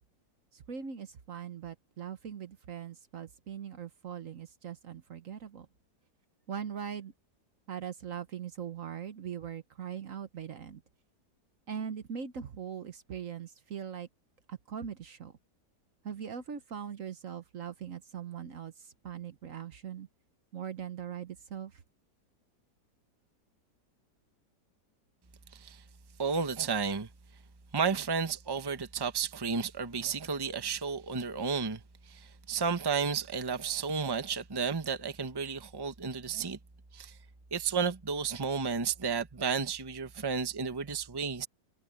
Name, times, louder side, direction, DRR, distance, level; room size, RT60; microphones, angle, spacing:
voice 1, 0.5-5.7 6.5-7.1 7.7-10.8 11.7-14.1 14.5-15.3 16.0-20.1 20.5-21.8, right 8 dB, 55° right, 1.3 m, -41 dB
voice 2, 26.2-27.1 27.7-31.8 32.1-36.6 36.9-37.1 37.5-41.5, right 5 dB, 15° right, 0.9 m, -32 dB
omnidirectional pair, 1.8 m